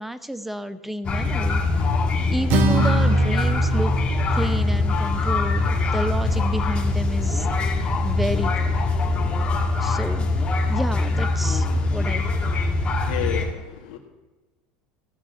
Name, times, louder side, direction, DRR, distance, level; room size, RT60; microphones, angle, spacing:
voice 1, 0.0-1.6 2.3-4.1 4.3-8.7 9.8-12.4, equal, 5° right, 12 dB, 0.8 m, -31 dB
sound 1, 1.0-13.5, left 2 dB, 25° left, 2.3 m, -22 dB
Acoustic guitar, 2.5-6.7, right 3 dB, 55° right, 1.6 m, -26 dB
voice 2, 13.0-14.0, left 9 dB, 85° left, 0 dB, 1.7 m, -30 dB
15.5 x 6.1 x 8.1 m, 1.2 s
supercardioid pair, 130°, 4 cm